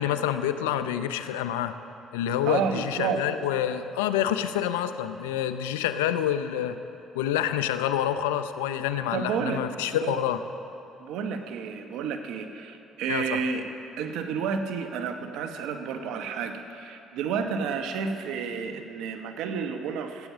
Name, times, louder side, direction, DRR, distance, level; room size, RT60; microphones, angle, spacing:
voice 1, 0.0-1.7 2.1-6.8 7.1-10.4 13.1-13.4, left 10 dB, 90° left, 11 dB, 0.5 m, -27 dB
voice 2, 2.4-3.2 9.1-9.6 10.0-10.2 11.0-13.6 14.0-20.3, right 6 dB, 75° right, 6 dB, 1.0 m, -31 dB
13.0 x 8.9 x 7.2 m, 2.8 s
supercardioid pair, 65°, 0 cm